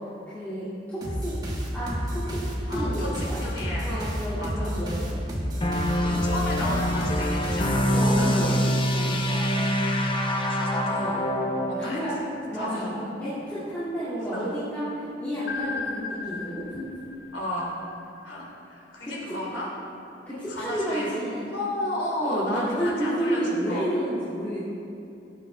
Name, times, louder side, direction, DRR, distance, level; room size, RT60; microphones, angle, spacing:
voice 1, 0.3-1.3 1.7-2.4 2.7-3.5 3.8-5.2 7.9-8.5 8.9-9.2 11.8-12.1 12.4-12.9 13.2-16.8 19.0-19.1 20.3-21.5 22.2-24.6, equal, 10° left, -13 dB, 2.3 m, -30 dB
sound 1, 1.0-8.2, equal, 20° right, 1.5 m, -30 dB
voice 2, 2.7-4.0 4.3-4.8 6.0-8.6 9.2-9.7 10.5-11.3 11.6-12.0 12.5-13.1 14.3-14.5 17.3-17.7 18.2-19.7 20.5-21.1 21.5-23.9, left 1 dB, 85° left, -4 dB, 2.9 m, -33 dB
sound 2, 5.6-11.8, equal, 30° left, 0.9 m, -25 dB
sound 3, 15.5-18.4, left 4 dB, 65° left, 0.9 m, -36 dB
17.5 x 8.3 x 3.4 m, 2.7 s
head